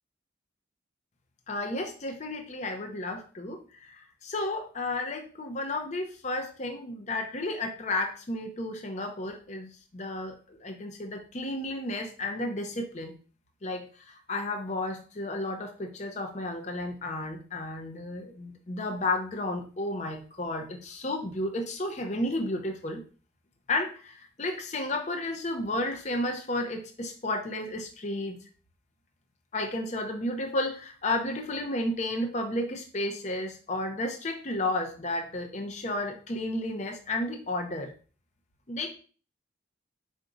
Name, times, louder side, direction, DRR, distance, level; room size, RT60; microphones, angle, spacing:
voice 1, 1.5-13.2 13.6-23.0 23.7-28.4 29.5-37.9 38.7-38.9, left 2 dB, 35° left, 4 dB, 0.6 m, -32 dB
4.7 x 2.7 x 3.8 m, 0.39 s
head